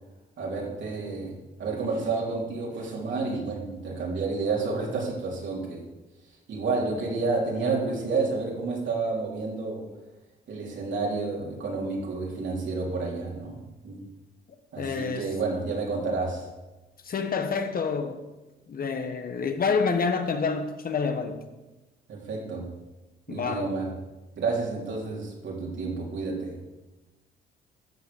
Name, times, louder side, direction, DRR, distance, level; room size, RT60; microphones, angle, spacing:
voice 1, 0.4-5.8 6.5-9.9 10.5-14.0 14.7-16.5 22.1-22.7 23.3-23.9 24.4-26.6, right 3 dB, 70° right, -2 dB, 4.0 m, -30 dB
voice 2, 14.8-15.3 17.0-18.2 18.7-21.4 23.3-23.7, left 5 dB, 45° left, 7 dB, 1.4 m, -28 dB
13.0 x 7.2 x 7.1 m, 1.1 s
cardioid pair, 90°, 20 cm